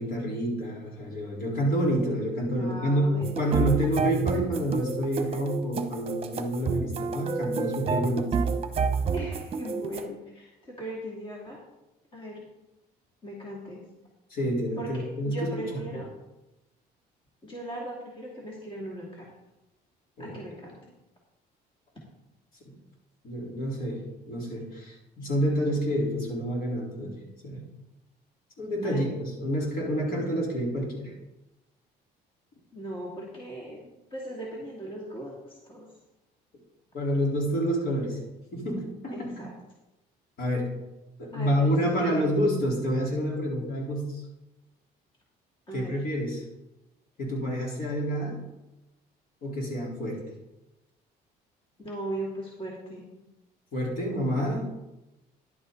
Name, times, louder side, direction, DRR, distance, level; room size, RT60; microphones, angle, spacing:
voice 1, 0.0-8.3 14.3-15.8 20.2-20.4 23.2-27.2 27.4-27.7 28.6-31.1 36.9-38.2 38.5-39.4 40.4-40.7 41.2-44.2 45.7-46.4 47.2-48.4 49.4-50.2 53.7-54.7, equal, 60° left, -2 dB, 4.0 m, -28 dB
voice 2, 2.6-3.9 9.1-11.6 12.1-12.4 13.2-13.8 14.8-16.1 17.4-19.3 20.2-20.8 28.8-29.1 32.7-33.8 34.1-35.9 39.1-39.5 41.3-42.3 45.7-45.9 51.8-53.1, right 1 dB, 30° left, -3 dB, 2.6 m, -38 dB
sound 1, 3.2-10.1, right 5 dB, 35° right, 1.0 m, -29 dB
11.0 x 8.6 x 4.0 m, 0.97 s
cardioid pair, 110°, 17 cm